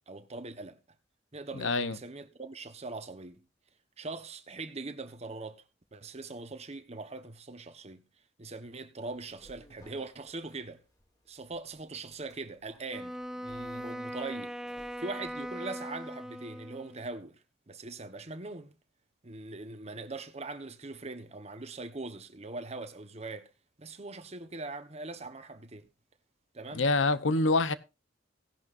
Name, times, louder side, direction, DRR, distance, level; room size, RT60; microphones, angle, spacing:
voice 1, 0.1-0.8 1.3-3.4 4.0-5.6 5.9-8.1 8.4-10.8 11.3-18.8 19.2-23.5 23.8-25.9 26.5-26.8, right 3 dB, 35° right, 1.2 m, -41 dB
voice 2, 1.6-2.0 26.7-27.7, left 3 dB, 85° left, 0.9 m, -26 dB
sound 1, 9.0-15.6, equal, 20° left, 3.8 m, -60 dB
Wind instrument woodwind instrument, 12.9-17.1, equal, 5° right, 0.5 m, -40 dB
17.0 x 11.0 x 2.6 m
head